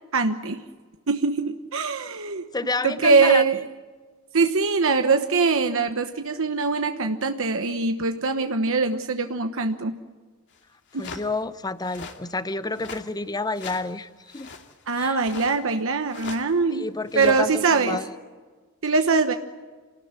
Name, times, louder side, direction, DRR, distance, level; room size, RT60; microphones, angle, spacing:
voice 1, 0.1-0.6 1.1-2.4 2.8-3.6 4.3-10.0 10.9-11.1 14.9-16.9 17.1-18.0 18.8-19.3, right 4 dB, 65° right, 6 dB, 1.2 m, -22 dB
voice 2, 2.5-3.4 11.0-14.5 15.0-15.2 16.7-18.1, left 3 dB, 20° left, 13 dB, 0.9 m, -29 dB
sound 1, 10.5-10.6 10.9-11.3 11.8-12.2 12.7-13.1 13.5-13.9 14.3-14.7 15.2-15.8 16.1-16.6 17.1-17.7, left 4 dB, 55° left, 2.5 m, -40 dB
28.5 x 19.0 x 9.7 m, 1.4 s
head